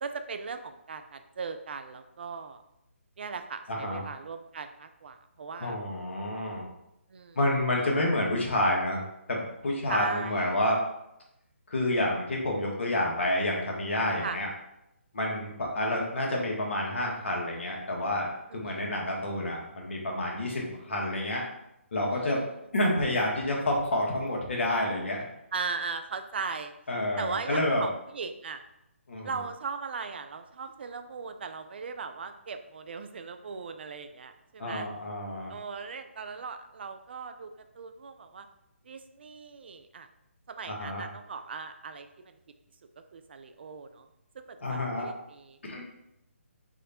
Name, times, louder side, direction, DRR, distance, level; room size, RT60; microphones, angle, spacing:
voice 1, 0.0-2.6 3.2-5.8 7.1-7.4 9.9-10.5 14.2-14.4 18.5-18.9 22.1-22.4 25.5-26.7 27.2-28.6 29.2-34.9 35.5-37.5 37.8-38.5 38.9-40.1 40.5-42.3 43.1-44.1 44.3-45.6, right 5 dB, 50° right, 8 dB, 0.4 m, -38 dB
voice 2, 3.7-4.0 5.6-6.6 7.3-9.0 9.3-10.8 11.7-14.5 15.1-21.4 21.9-22.4 22.7-25.2 26.9-27.9 29.1-29.3 34.6-35.5 40.7-41.1 44.6-45.1 45.6-45.8, left 1 dB, 60° left, -2 dB, 1.4 m, -29 dB
3.6 x 3.3 x 4.1 m, 0.83 s
figure-of-eight pair, 150°, 7 cm